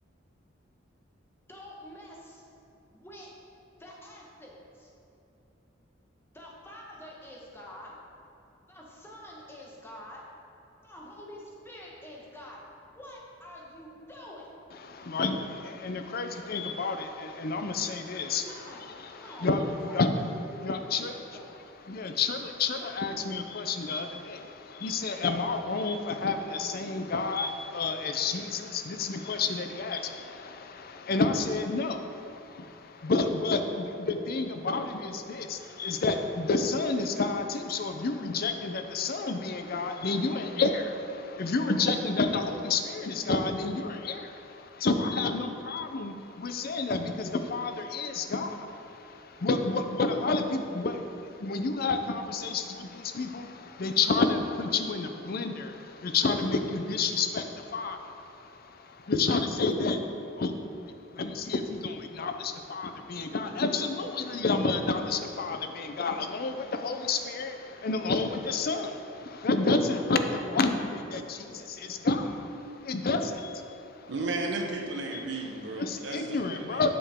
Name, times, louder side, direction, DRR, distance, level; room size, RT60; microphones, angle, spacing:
voice 1, 1.5-2.4 2.9-3.3 3.8-4.9 6.3-8.0 8.7-10.3 10.8-14.5 18.4-20.0 20.5-20.6 21.0-21.6 41.7-41.9, left 1 dB, 15° left, -3 dB, 1.2 m, -47 dB
voice 2, 14.8-18.4 19.0-20.1 20.4-21.1 21.9-60.0 60.4-60.5 60.8-74.1 75.1-75.2 75.8-76.9, left 3 dB, 55° left, 7 dB, 0.6 m, -30 dB
voice 3, 74.1-76.9, right 2 dB, 65° right, 0 dB, 1.0 m, -34 dB
8.3 x 7.0 x 3.6 m, 2.8 s
head